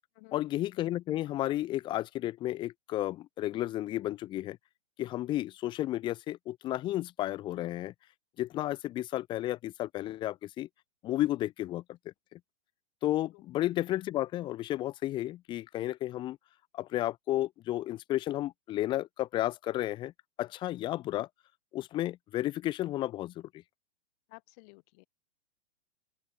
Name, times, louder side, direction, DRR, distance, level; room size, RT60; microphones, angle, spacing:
voice 1, 0.3-4.6 5.0-7.9 8.4-10.7 11.0-11.8 12.3-12.4 13.0-16.4 16.7-20.1 20.4-21.3 21.7-23.5, left 14 dB, 15° left, 0.6 m, -32 dB
voice 2, 24.3-25.1, left 31 dB, 35° left, 3.5 m, -54 dB
open air
hypercardioid pair, 155°, 35 cm